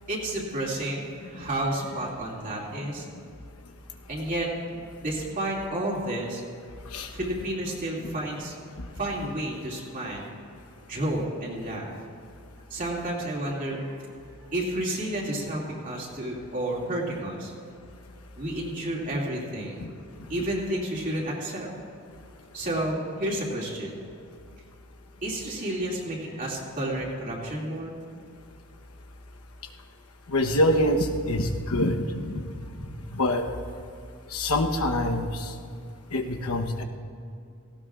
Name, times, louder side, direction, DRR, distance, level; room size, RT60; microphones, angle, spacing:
voice 1, 0.1-3.1 4.1-4.5 5.0-6.4 7.1-8.6 9.0-10.3 10.9-11.9 12.7-14.0 14.5-17.5 18.4-19.9 20.3-21.7 22.5-24.0 25.2-28.0 32.8-32.9, right 1 dB, 40° right, -4 dB, 2.4 m, -31 dB
voice 2, 30.3-32.4 33.2-33.4 34.3-35.3 36.1-36.8, left 1 dB, 85° left, 4 dB, 1.0 m, -25 dB
18.0 x 16.0 x 2.5 m, 2.4 s
head